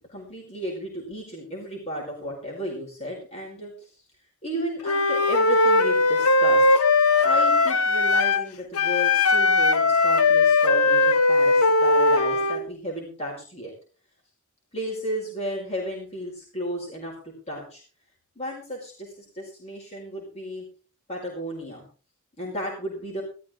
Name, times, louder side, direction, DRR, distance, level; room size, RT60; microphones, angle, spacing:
voice 1, 0.1-4.0 4.4-6.7 7.2-13.7 14.7-17.8 18.3-20.6 21.1-21.8 22.4-23.2, equal, 30° left, -2 dB, 4.9 m, -34 dB
Wind instrument woodwind instrument, 4.8-8.5 8.7-12.6, left 3 dB, 80° left, 1.0 m, -19 dB
19.5 x 13.0 x 3.8 m, 0.39 s
head